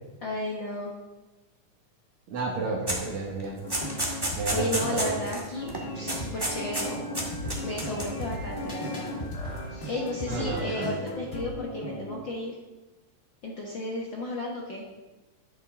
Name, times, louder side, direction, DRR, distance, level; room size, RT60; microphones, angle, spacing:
voice 1, 0.2-0.9 4.5-7.1 7.6-9.1 9.8-12.5 13.4-14.8, left 1 dB, 75° left, -2 dB, 1.1 m, -33 dB
voice 2, 2.3-3.6 4.3-5.1 10.3-11.0, right 4 dB, 60° right, -4 dB, 2.3 m, -31 dB
sound 1, 2.9-3.1 3.4-5.4 5.7-5.8 6.1-6.9 7.1-8.2, right 1 dB, 15° right, 0.7 m, -30 dB
sound 2, 3.6-12.2, left 1 dB, 40° left, 1.7 m, -38 dB
sound 3, 5.6-10.9, equal, 15° left, 3.0 m, -38 dB
11.0 x 10.5 x 3.7 m, 1.1 s
omnidirectional pair, 3.9 m